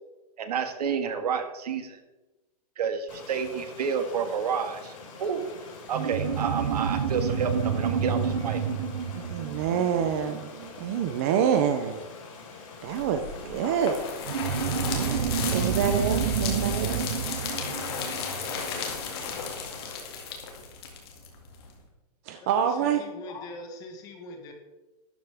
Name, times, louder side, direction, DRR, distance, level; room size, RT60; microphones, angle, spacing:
voice 1, 0.4-2.0 2.8-5.4 5.9-8.6, right 6 dB, 80° right, 7 dB, 1.8 m, -30 dB
Stream, 3.1-20.0, left 4 dB, 55° left, 4.1 m, -45 dB
sound 1, 5.9-10.9 14.3-19.2, right 7 dB, 60° right, 0.8 m, -29 dB
voice 2, 9.1-10.5 10.8-12.0 12.8-14.2 14.9-17.1 22.3-23.0, right 8 dB, 20° right, 6 dB, 0.4 m, -27 dB
sound 2, 12.9-21.7, left 5 dB, 40° left, 2.1 m, -34 dB
voice 3, 22.4-24.5, left 2 dB, 20° left, 4 dB, 1.2 m, -42 dB
12.5 x 10.5 x 3.4 m, 1.1 s
supercardioid pair, 180°, 20 cm